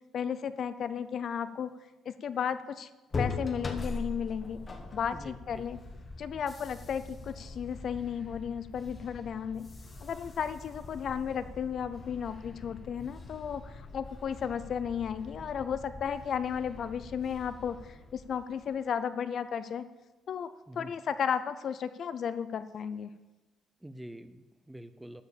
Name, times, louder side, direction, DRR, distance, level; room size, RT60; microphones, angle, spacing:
voice 1, 0.1-1.7 2.1-2.9 3.2-4.6 4.9-5.8 6.2-9.7 10.0-19.9 20.3-20.5 20.8-23.1, left 7 dB, 45° left, 13 dB, 0.5 m, -34 dB
sound 1, 3.1-18.8, left 3 dB, 25° left, 1.1 m, -42 dB
voice 2, 5.1-5.7 20.7-20.9 23.8-25.2, right 1 dB, 5° right, 11 dB, 0.5 m, -46 dB
13.0 x 5.0 x 7.1 m, 1.1 s
cardioid pair, 145°, 0 cm